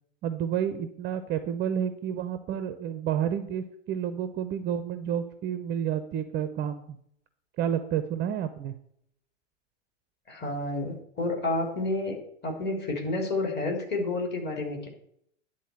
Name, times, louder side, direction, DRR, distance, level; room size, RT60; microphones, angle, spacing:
voice 1, 0.2-7.0 7.6-8.7, right 9 dB, 30° right, 11 dB, 0.7 m, -30 dB
voice 2, 10.3-12.2 12.4-14.9, left 2 dB, 25° left, 1 dB, 3.2 m, -30 dB
10.0 x 4.2 x 7.7 m, 0.71 s
hypercardioid pair, 100°, 37 cm